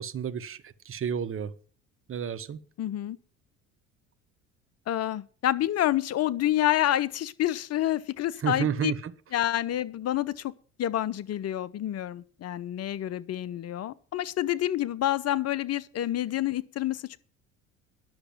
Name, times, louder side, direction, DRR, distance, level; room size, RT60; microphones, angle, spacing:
voice 1, 0.0-1.5 2.1-2.6 8.4-9.1, right 8 dB, 35° right, 1.1 m, -31 dB
voice 2, 2.8-3.2 4.9-8.9 9.3-10.5 10.8-17.2, left 13 dB, 45° left, 0.8 m, -28 dB
10.5 x 6.6 x 7.4 m
hypercardioid pair, 65°, 36 cm